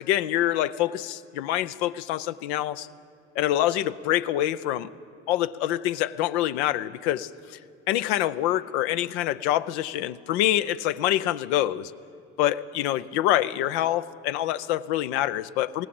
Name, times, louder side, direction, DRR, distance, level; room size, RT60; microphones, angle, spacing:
voice 1, 0.0-2.9 3.4-4.9 5.3-7.3 7.9-11.9 12.4-15.9, left 13 dB, 90° left, 13 dB, 0.7 m, -26 dB
20.5 x 17.5 x 7.8 m, 2.6 s
supercardioid pair, 80°, 32 cm